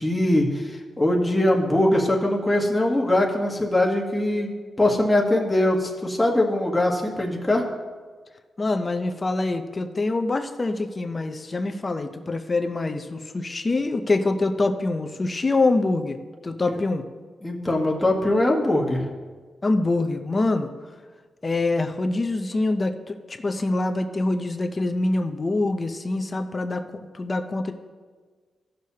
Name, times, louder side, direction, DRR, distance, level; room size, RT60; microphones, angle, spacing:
voice 1, 0.0-7.6 16.6-16.8 17.4-19.0, left 1 dB, 10° left, -1 dB, 1.3 m, -22 dB
voice 2, 8.6-16.2 16.4-17.0 19.6-20.7 21.4-26.8 27.1-27.7, left 2 dB, 30° left, 6 dB, 0.6 m, -25 dB
15.5 x 6.4 x 2.8 m, 1.5 s
wide cardioid pair, 120°, 0 cm